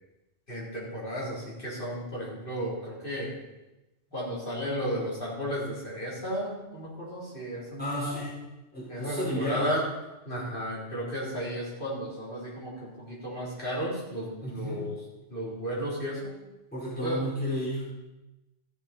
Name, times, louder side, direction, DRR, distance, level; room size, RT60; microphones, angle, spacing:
voice 1, 0.5-3.3 4.1-8.1 8.9-9.8 10.3-14.9 15.3-16.3 17.0-17.2, equal, 45° left, -6 dB, 4.2 m, -33 dB
voice 2, 7.8-8.4 8.7-9.8 14.4-14.9 16.7-17.9, equal, 10° left, -9 dB, 5.1 m, -33 dB
14.0 x 7.9 x 4.4 m, 1.0 s
omnidirectional pair, 1.2 m